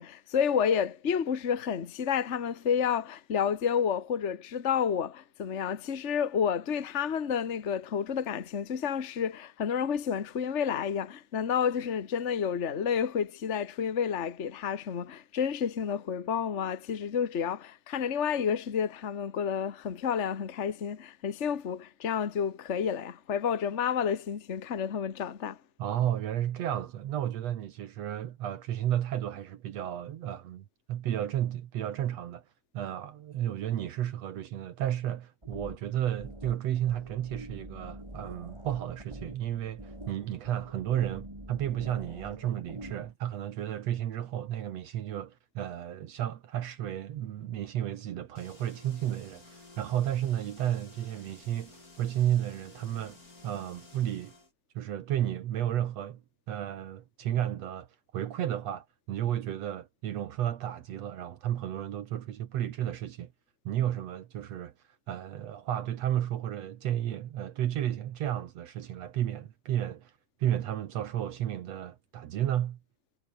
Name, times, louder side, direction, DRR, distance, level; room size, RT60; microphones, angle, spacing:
voice 1, 0.0-25.6, left 7 dB, 60° left, 0.7 m, -30 dB
voice 2, 25.8-32.5 32.7-54.3 54.8-57.9 58.1-63.3 63.7-64.7 65.1-70.1 70.4-72.8, right 11 dB, 65° right, 2.2 m, -32 dB
sound 1, 35.4-43.1, right 1 dB, 10° right, 6.5 m, -45 dB
sound 2, 48.3-54.5, left 2 dB, 30° left, 5.2 m, -54 dB
omnidirectional pair, 3.4 m